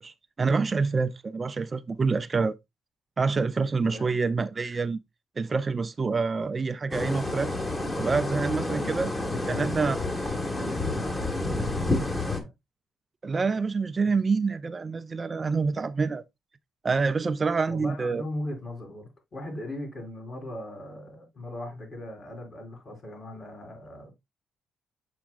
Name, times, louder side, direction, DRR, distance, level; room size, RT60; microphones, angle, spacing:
voice 1, 0.0-2.6 3.2-5.0 5.4-7.6 8.0-9.1 9.5-10.0 13.2-16.2 16.8-18.2, right 4 dB, 30° right, 0.4 m, -27 dB
sound 1, 6.9-12.4, left 2 dB, 20° left, 1.4 m, -29 dB
voice 2, 10.3-11.8 12.2-12.5 17.7-24.1, left 1 dB, 45° left, 3.8 m, -38 dB
7.0 x 5.9 x 2.3 m
cardioid pair, 90°, 0 cm